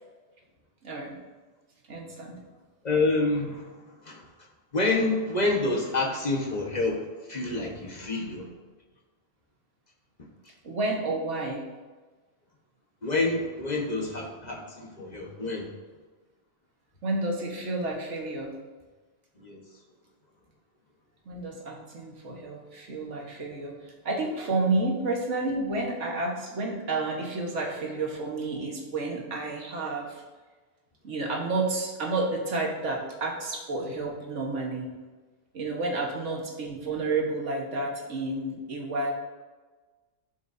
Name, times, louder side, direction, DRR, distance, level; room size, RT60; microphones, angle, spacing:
voice 1, 0.8-1.2 1.9-2.4 8.0-8.1 10.6-11.6 17.0-18.5 21.2-30.2 31.0-34.9 35.5-39.1, right 2 dB, 65° right, 0 dB, 1.6 m, -30 dB
voice 2, 2.8-4.3 4.7-8.5 13.0-15.7 19.4-19.6, left 2 dB, 35° left, 0 dB, 1.2 m, -28 dB
12.0 x 6.1 x 2.6 m, 1.3 s
omnidirectional pair, 1.3 m